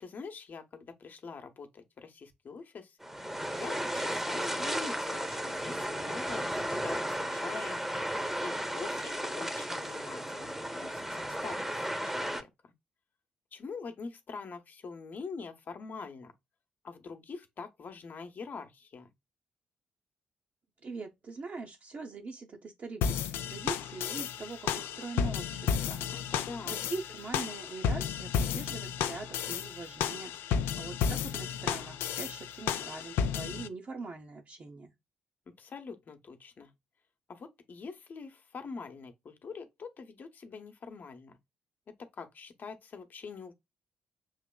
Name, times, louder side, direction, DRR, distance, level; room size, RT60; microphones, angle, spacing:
voice 1, 0.0-3.0 3.5-7.9 8.4-12.7 13.5-16.3 16.8-19.1 26.1-26.8 35.5-36.7 37.3-41.4 42.0-43.5, left 5 dB, 45° left, 0.9 m, -44 dB
sound 1, 3.0-12.4, equal, 5° right, 0.8 m, -34 dB
voice 2, 20.8-26.0 26.6-34.9, right 4 dB, 40° right, 0.8 m, -42 dB
sound 2, 23.0-33.7, left 7 dB, 65° left, 0.4 m, -33 dB
6.5 x 2.9 x 2.2 m
figure-of-eight pair, 40°, 4 cm